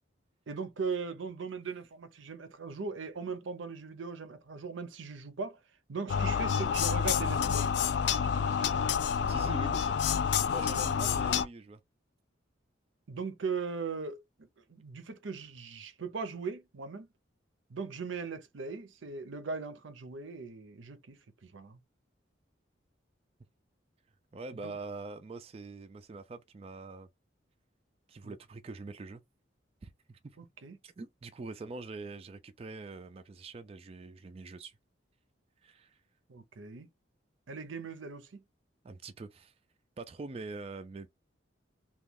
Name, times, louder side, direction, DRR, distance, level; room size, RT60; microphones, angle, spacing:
voice 1, 0.5-5.6 5.9-7.7 8.2-8.9 9.3-9.8 13.1-17.1 17.7-21.8 24.6-24.8 28.2-28.3 30.4-30.8 36.3-36.9 37.5-38.4, right 4 dB, 80° right, 0.6 m, -39 dB
sound 1, 6.1-11.4, left 7 dB, 60° left, 0.3 m, -28 dB
voice 2, 9.3-10.0 10.5-11.8 24.3-27.1 28.1-29.2 29.8-30.4 30.8-34.7 35.6-36.0 38.8-39.5 40.0-41.1, right 3 dB, 30° right, 0.3 m, -44 dB
3.0 x 2.3 x 3.5 m
head